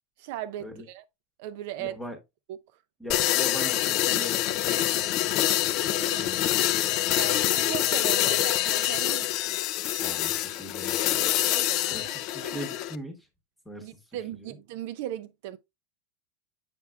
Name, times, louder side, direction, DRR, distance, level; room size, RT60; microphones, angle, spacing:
voice 1, 0.2-1.0 1.4-1.9 2.5-2.6 6.0-6.4 6.9-9.6 11.5-12.1 12.4-12.6 13.8-15.6, right 13 dB, 55° right, 0.4 m, -38 dB
voice 2, 1.8-2.2 3.0-5.3 6.1-6.5 10.0-11.3 11.9-13.3 13.6-14.5, equal, 5° left, 1.1 m, -41 dB
sound 1, 3.1-12.9, left 13 dB, 35° left, 0.4 m, -26 dB
7.3 x 5.9 x 2.3 m
supercardioid pair, 170°, 0 cm